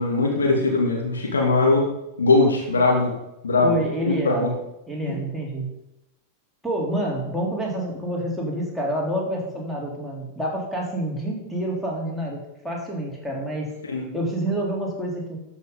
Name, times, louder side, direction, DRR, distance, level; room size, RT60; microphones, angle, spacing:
voice 1, 0.0-1.9 2.2-3.1 3.4-4.5 5.0-5.1 13.8-14.1, left 3 dB, 70° left, 0 dB, 2.6 m, -21 dB
voice 2, 3.6-4.5 4.9-5.7 6.6-13.7 14.1-15.4, right 1 dB, ahead, -3 dB, 3.4 m, -28 dB
13.0 x 6.3 x 5.4 m, 0.88 s
figure-of-eight pair, 90°, 0 cm